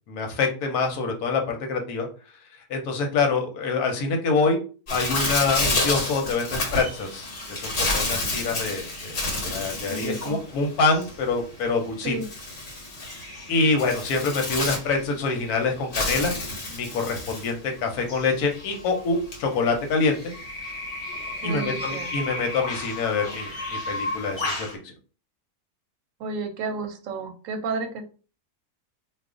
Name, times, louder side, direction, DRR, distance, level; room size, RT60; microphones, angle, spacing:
voice 1, 0.1-2.1 2.7-4.6 4.9-12.2 13.5-16.3 16.7-20.2 21.4-24.9, left 4 dB, 85° left, 3 dB, 1.2 m, -26 dB
Bird, 4.9-24.7, left 2 dB, 55° left, 1.1 m, -31 dB
voice 2, 9.9-10.4 12.0-12.3 21.4-22.1 26.2-28.0, right 3 dB, 70° right, 6 dB, 0.9 m, -31 dB
2.4 x 2.4 x 3.6 m, 0.36 s
omnidirectional pair, 1.6 m